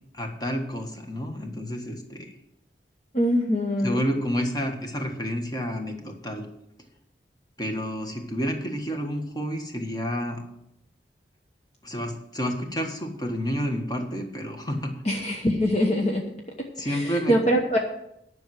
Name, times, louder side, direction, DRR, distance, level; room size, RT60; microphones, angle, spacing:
voice 1, 0.1-2.3 3.8-6.5 7.6-10.4 11.8-14.9 16.8-17.4, equal, 25° left, 3 dB, 1.4 m, -29 dB
voice 2, 3.1-4.0 15.0-16.2 16.9-17.8, equal, 40° left, 1 dB, 1.0 m, -23 dB
10.5 x 6.1 x 7.6 m, 0.78 s
head